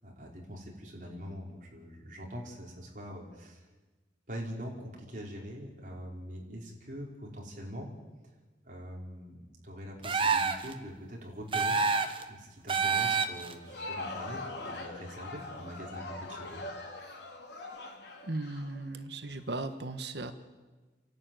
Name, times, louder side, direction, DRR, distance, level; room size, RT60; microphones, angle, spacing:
voice 1, 0.0-3.7 4.3-7.9 8.6-11.8 12.3-16.6, equal, 45° right, -1 dB, 4.7 m, -43 dB
sound 1, 10.0-10.7 11.5-12.2 12.7-13.5, right 5 dB, 30° right, 1.2 m, -27 dB
Crowd, 13.5-19.4, left 2 dB, 85° left, 3.2 m, -42 dB
voice 2, 18.2-20.3, right 2 dB, 75° right, 9 dB, 1.4 m, -37 dB
29.5 x 12.0 x 9.2 m, 1.3 s
head